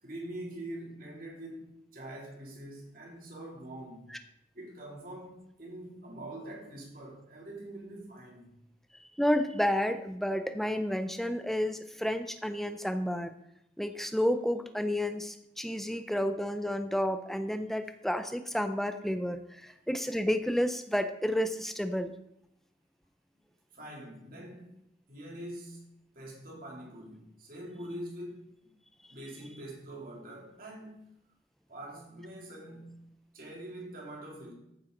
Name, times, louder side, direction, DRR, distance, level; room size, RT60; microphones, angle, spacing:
voice 1, 0.0-4.2 4.5-8.6 15.9-16.0 23.7-24.8 25.1-28.8 29.1-31.1 31.7-33.0 33.3-34.5, right 1 dB, 50° right, 3.0 m, -44 dB
voice 2, 9.2-13.3 13.8-22.1, equal, ahead, 0.6 m, -31 dB
14.5 x 7.6 x 3.9 m
head